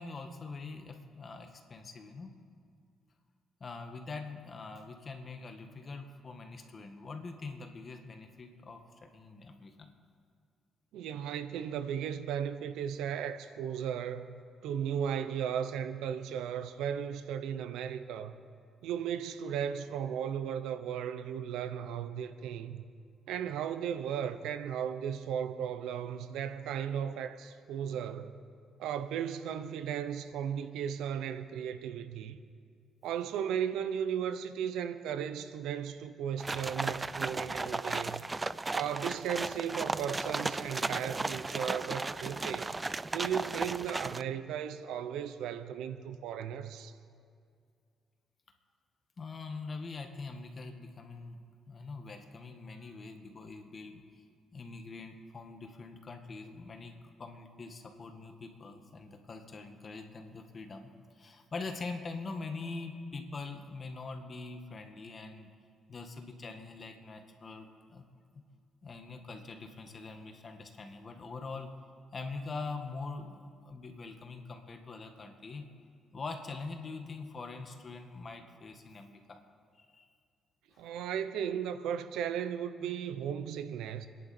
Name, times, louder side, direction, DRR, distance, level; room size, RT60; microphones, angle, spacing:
voice 1, 0.0-2.4 3.6-9.9 49.2-51.4 51.7-54.0 54.5-56.9 57.2-65.5 65.9-68.1 68.3-68.4 68.8-71.8 72.1-75.7 76.1-79.4 79.7-80.1 80.7-80.8, left 3 dB, 40° left, 1.9 m, -43 dB
voice 2, 10.9-18.4 18.8-22.8 23.3-28.4 28.8-32.4 33.0-38.3 38.7-42.8 43.1-46.9 80.8-84.1, right 8 dB, 90° right, 0.8 m, -36 dB
sound 1, 36.4-44.2, right 3 dB, 20° right, 0.4 m, -35 dB
28.0 x 11.0 x 4.5 m
cardioid pair, 90°, 0 cm